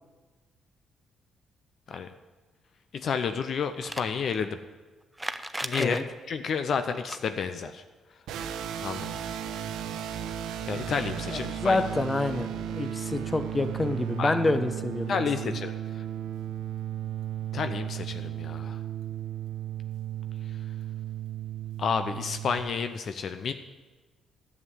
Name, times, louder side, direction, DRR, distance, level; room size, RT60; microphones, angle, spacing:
voice 1, 2.9-4.6 5.6-6.0 6.3-7.8 8.8-9.2 10.7-11.8 14.2-14.4 15.1-16.0 17.5-18.8 21.8-23.5, left 6 dB, 60° left, 9 dB, 0.7 m, -30 dB
sound 1, 3.7-4.1 5.1-6.0 6.9-7.2 9.7-9.8 10.0-10.1 11.2-11.3, right 1 dB, 10° right, 0.6 m, -35 dB
sound 2, 8.3-22.6, right 10 dB, 85° right, 0.8 m, -35 dB
voice 2, 11.3-15.6, left 2 dB, 20° left, 9 dB, 0.9 m, -28 dB
11.0 x 7.4 x 8.2 m, 1.3 s
cardioid pair, 90°, 0 cm